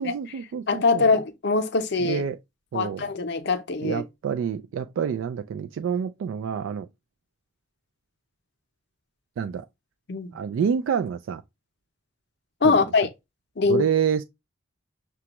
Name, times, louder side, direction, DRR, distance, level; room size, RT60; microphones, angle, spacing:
voice 1, 0.0-1.1 2.0-2.4 2.7-3.0 3.8-6.9 9.4-9.7 10.3-11.4 12.6-12.8 13.7-14.2, right 7 dB, 85° right, 0.3 m, -27 dB
voice 2, 0.7-2.2 2.7-4.0 10.1-10.3 12.6-13.1 13.6-13.9, left 4 dB, 60° left, 0.6 m, -23 dB
6.0 x 2.2 x 2.9 m
head